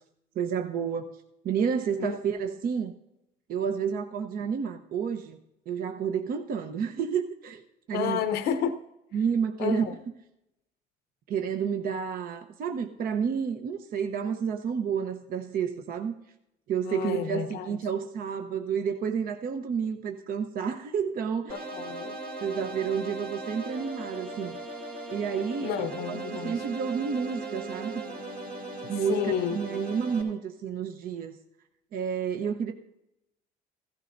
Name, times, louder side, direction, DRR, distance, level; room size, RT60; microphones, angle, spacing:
voice 1, 0.3-1.1 1.4-2.9 3.5-5.4 5.7-7.6 7.9-8.2 9.1-9.9 11.3-16.1 16.7-21.7 22.4-24.6 25.1-28.0 28.8-31.4 31.9-32.7, right 7 dB, 60° right, 0.9 m, -30 dB
voice 2, 7.9-8.8 9.6-9.9 16.8-17.7 21.5-22.2 25.6-26.6 29.1-29.6, left 8 dB, 75° left, 0.7 m, -31 dB
sound 1, 21.5-30.2, right 2 dB, 80° right, 4.0 m, -38 dB
15.5 x 14.5 x 2.6 m
cardioid pair, 110°, 17 cm